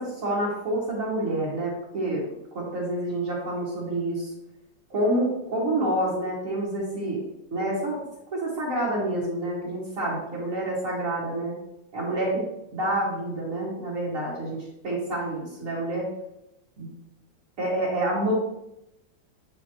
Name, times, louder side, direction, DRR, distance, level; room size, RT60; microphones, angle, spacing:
voice 1, 0.0-2.2 2.5-4.3 4.9-7.2 7.5-8.0 8.3-11.5 11.9-12.3 12.7-16.0 16.8-16.9 17.6-18.3, right 1 dB, 45° right, -7 dB, 1.9 m, -28 dB
7.9 x 5.1 x 3.0 m, 0.86 s
omnidirectional pair, 2.1 m